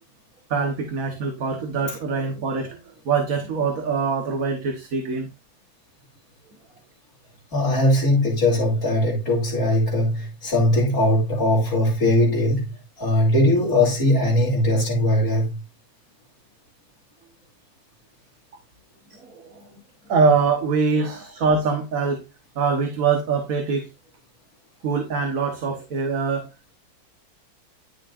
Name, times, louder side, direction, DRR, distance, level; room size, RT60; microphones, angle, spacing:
voice 1, 0.5-5.3 19.1-19.4 20.1-22.2 22.5-23.9 24.8-26.5, right 5 dB, 50° right, 1.6 m, -23 dB
voice 2, 7.5-12.6 13.0-15.6, left 1 dB, 50° left, 3.5 m, -20 dB
11.0 x 6.3 x 2.5 m
omnidirectional pair, 2.1 m